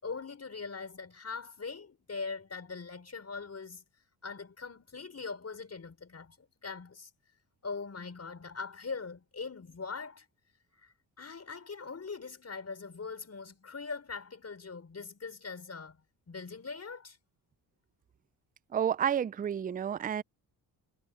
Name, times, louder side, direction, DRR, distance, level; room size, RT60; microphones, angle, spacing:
voice 1, 0.0-3.8 4.2-7.1 7.6-10.3 10.8-16.0 16.3-17.2, left 4 dB, 35° left, 6.0 m, -41 dB
voice 2, 18.7-20.2, right 9 dB, 20° right, 0.4 m, -30 dB
cardioid pair, 80°, 41 cm